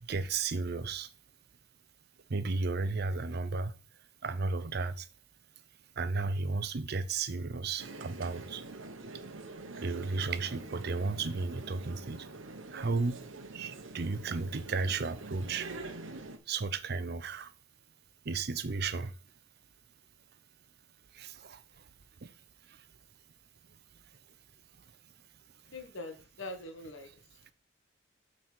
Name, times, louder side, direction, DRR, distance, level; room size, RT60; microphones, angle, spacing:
voice 1, 0.0-1.1 2.3-3.7 4.2-5.1 6.0-8.6 9.8-12.3 12.7-13.2 13.5-15.7 16.5-17.5 18.2-19.1 21.1-21.6 22.2-22.3 22.7-22.8, right 4 dB, 55° right, 0.6 m, -34 dB
sound 1, 7.8-16.4, right 3 dB, 85° right, 1.0 m, -45 dB
voice 2, 25.7-27.2, left 2 dB, 75° left, 1.5 m, -43 dB
7.6 x 4.1 x 6.1 m
head